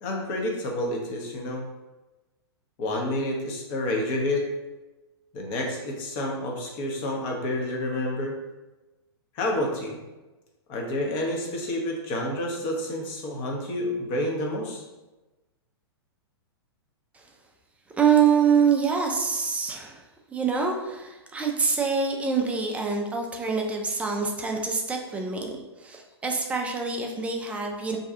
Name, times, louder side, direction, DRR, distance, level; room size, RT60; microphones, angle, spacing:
voice 1, 0.0-1.6 2.8-4.4 5.3-8.3 9.3-10.0 10.7-14.8, left 1 dB, 40° left, 0 dB, 0.7 m, -29 dB
voice 2, 18.0-20.0 20.3-28.0, right 6 dB, 10° right, 1 dB, 0.3 m, -25 dB
2.7 x 2.3 x 3.5 m, 1.1 s
figure-of-eight pair, 105°, 14 cm